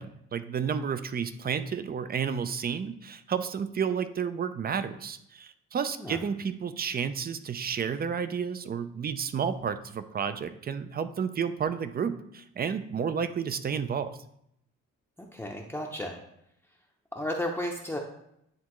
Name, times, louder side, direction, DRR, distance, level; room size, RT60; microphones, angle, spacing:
voice 1, 0.0-14.1, right 7 dB, 30° right, 11 dB, 0.5 m, -31 dB
voice 2, 15.2-16.2 17.1-18.0, left 1 dB, 5° left, -1 dB, 0.7 m, -33 dB
9.7 x 3.5 x 3.1 m, 0.76 s
cardioid pair, 90°, 30 cm